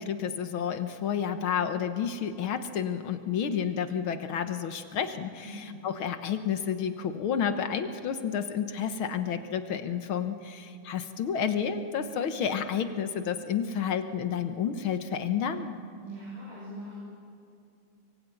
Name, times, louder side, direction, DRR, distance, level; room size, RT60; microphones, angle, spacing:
voice 1, 0.0-15.7, left 7 dB, 60° left, 8 dB, 1.4 m, -30 dB
voice 2, 5.4-5.8 16.0-16.9, right 1 dB, 55° right, -7 dB, 9.3 m, -41 dB
24.0 x 24.0 x 9.2 m, 2.5 s
omnidirectional pair, 3.7 m